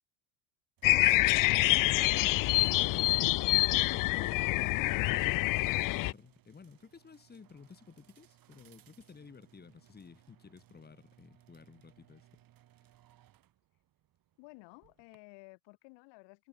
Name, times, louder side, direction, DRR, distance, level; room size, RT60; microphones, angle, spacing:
sound 1, 0.8-6.1, left 20 dB, 45° left, 0.6 m, -26 dB
sound 2, 0.8-15.2, right 12 dB, 50° right, 5.0 m, -65 dB
voice 1, 1.8-3.2 3.5-12.4 12.8-12.9, left 5 dB, 20° left, 3.1 m, -53 dB
voice 2, 14.4-16.5, left 29 dB, 70° left, 7.6 m, -54 dB
supercardioid pair, 100°, 45 cm